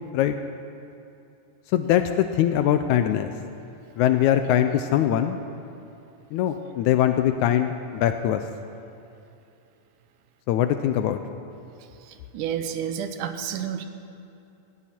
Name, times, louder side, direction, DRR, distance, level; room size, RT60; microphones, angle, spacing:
voice 1, 1.7-3.3 4.0-5.4 6.3-8.4 10.5-11.2, left 11 dB, 80° left, 8 dB, 1.8 m, -22 dB
voice 2, 12.1-13.9, right 8 dB, 80° right, 8 dB, 2.2 m, -30 dB
18.5 x 15.5 x 4.4 m, 2.7 s
omnidirectional pair, 3.8 m